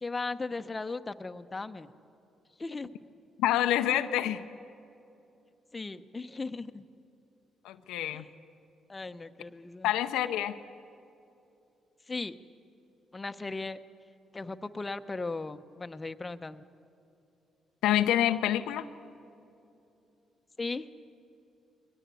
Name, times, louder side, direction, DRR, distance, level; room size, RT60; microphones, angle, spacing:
voice 1, 0.0-1.9 2.6-2.9 5.7-6.8 8.1-8.2 8.9-9.9 12.1-12.3 13.1-13.8 14.3-16.6 20.6-20.9, left 3 dB, 25° left, 9 dB, 0.9 m, -37 dB
voice 2, 3.4-4.4 7.6-8.3 9.8-10.6 17.8-18.9, left 12 dB, 85° left, 8 dB, 0.7 m, -27 dB
22.5 x 17.5 x 8.4 m, 2.8 s
supercardioid pair, 65°, 0 cm